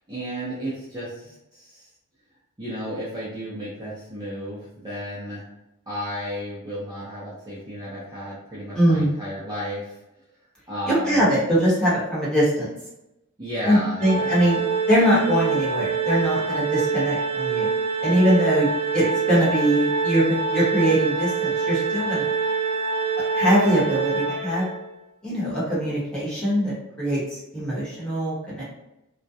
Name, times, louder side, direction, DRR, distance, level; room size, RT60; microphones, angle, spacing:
voice 1, 0.1-1.9 2.6-5.5 5.9-10.0 10.7-11.3 13.4-14.5, equal, 20° right, -9 dB, 0.6 m, -33 dB
voice 2, 8.7-9.1 10.9-12.7 13.6-14.6 14.9-17.7 18.0-22.3 23.3-24.7 25.2-28.6, equal, 5° left, -9 dB, 1.0 m, -22 dB
Organ, 14.0-24.9, right 5 dB, 65° right, 0.5 m, -25 dB
2.3 x 2.1 x 2.7 m, 0.90 s
head